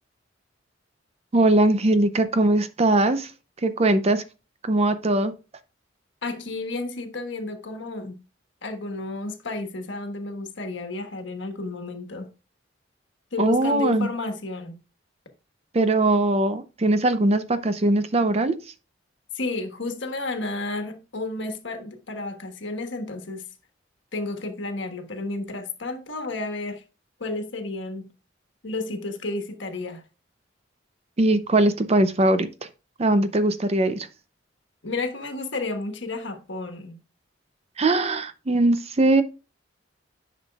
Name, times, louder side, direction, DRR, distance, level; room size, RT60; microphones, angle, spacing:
voice 1, 1.3-3.3 3.6-4.2 4.6-5.3 13.4-14.1 15.7-18.6 31.2-32.5 33.0-34.1 37.8-39.2, right 2 dB, 35° right, 0.6 m, -20 dB
voice 2, 6.2-8.2 8.6-12.3 13.3-14.8 19.3-23.5 24.1-26.8 27.2-28.1 28.6-30.0 34.8-37.0, left 2 dB, 70° left, 1.4 m, -32 dB
10.5 x 5.8 x 2.3 m
head